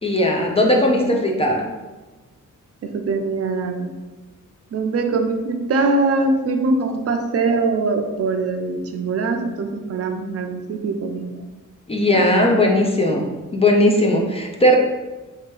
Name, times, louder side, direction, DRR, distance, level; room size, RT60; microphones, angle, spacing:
voice 1, 0.0-1.6 11.9-13.2 13.5-14.8, left 1 dB, 20° left, 0 dB, 0.4 m, -17 dB
voice 2, 0.6-1.6 2.8-3.9 4.7-11.5 12.1-12.8, right 3 dB, 50° right, 5 dB, 0.5 m, -23 dB
3.4 x 2.9 x 4.6 m, 1.2 s
wide cardioid pair, 175°, 32 cm